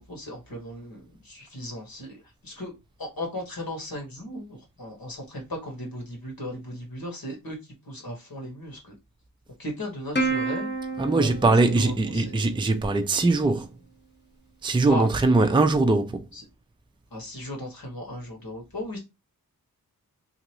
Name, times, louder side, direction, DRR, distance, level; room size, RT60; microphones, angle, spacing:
voice 1, 0.0-2.2 2.4-7.6 7.8-8.9 9.6-10.7 11.1-12.3 14.9-15.1 16.3-16.4 17.1-19.0, equal, 70° left, 1.4 m, -36 dB
Plucked string instrument, 10.2-12.9, right 3 dB, 30° left, 0.9 m, -30 dB
voice 2, 11.0-13.7 14.6-16.3, right 2 dB, 15° right, 0.4 m, -21 dB
2.8 x 2.5 x 2.9 m
wide cardioid pair, 50°, 37 cm